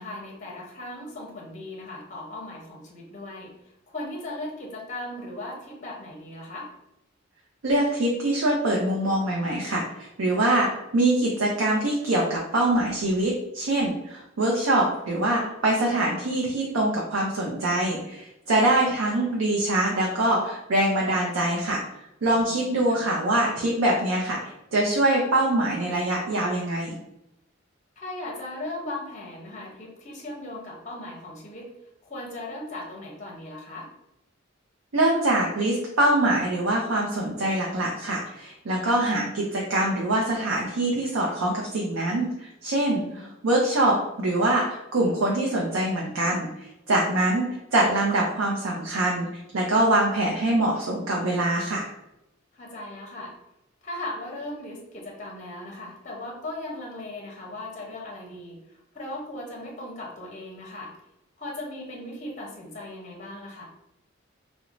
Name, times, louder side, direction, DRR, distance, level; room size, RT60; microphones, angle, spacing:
voice 1, 0.0-3.5 3.9-6.7 18.5-18.6 22.3-23.0 28.0-31.7 32.0-33.9 38.8-39.0 42.9-43.3 52.5-53.3 53.8-58.6 58.9-60.9 61.4-63.6, left 1 dB, 35° left, -1 dB, 0.6 m, -38 dB
voice 2, 7.6-21.8 22.2-24.4 24.7-27.0 34.9-46.5 46.9-49.3 49.5-51.9, right 1 dB, 90° right, -2 dB, 0.5 m, -24 dB
3.0 x 2.1 x 2.5 m, 0.87 s
head